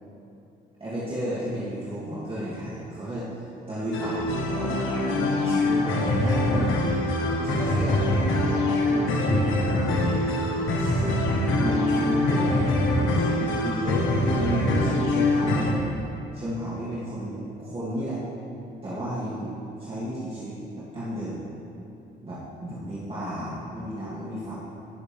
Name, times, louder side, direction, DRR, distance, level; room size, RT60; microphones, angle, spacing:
voice 1, 0.8-6.8 7.4-10.3 10.7-12.5 13.0-15.7 16.3-18.2 18.8-21.4 22.2-24.5, right 1 dB, 30° right, -10 dB, 2.7 m, -33 dB
sound 1, 3.9-15.7, left 1 dB, 75° left, 1.5 m, -24 dB
16.5 x 6.8 x 3.5 m, 2.8 s
cardioid pair, 90°, 20 cm